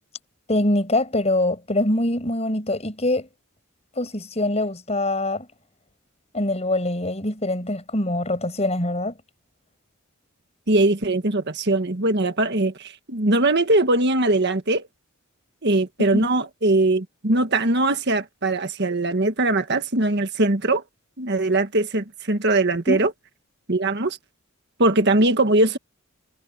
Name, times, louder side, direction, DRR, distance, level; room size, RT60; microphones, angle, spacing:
voice 1, 0.5-3.3 4.0-5.5 6.3-9.1 16.1-16.2 22.9-23.1, left 1 dB, 30° left, 6.0 m, -24 dB
voice 2, 10.7-14.9 15.6-20.8 21.2-23.1 23.7-24.2 24.8-25.8, right 2 dB, 55° right, 1.6 m, -21 dB
head